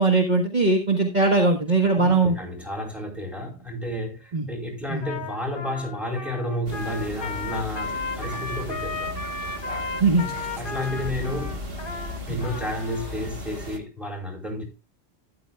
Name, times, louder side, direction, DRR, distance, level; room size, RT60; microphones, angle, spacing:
voice 1, 0.0-2.3 4.3-4.4 4.9-5.0 10.0-10.3 12.3-12.4, right 3 dB, 40° right, 1.5 m, -20 dB
voice 2, 1.9-9.5 10.6-11.6 12.3-14.6, left 1 dB, ahead, 4.8 m, -31 dB
Trumpet, 4.8-13.1, left 4 dB, 50° left, 1.3 m, -35 dB
sound 1, 6.6-13.8, equal, 55° right, 1.7 m, -36 dB
13.0 x 11.0 x 2.3 m
omnidirectional pair, 1.2 m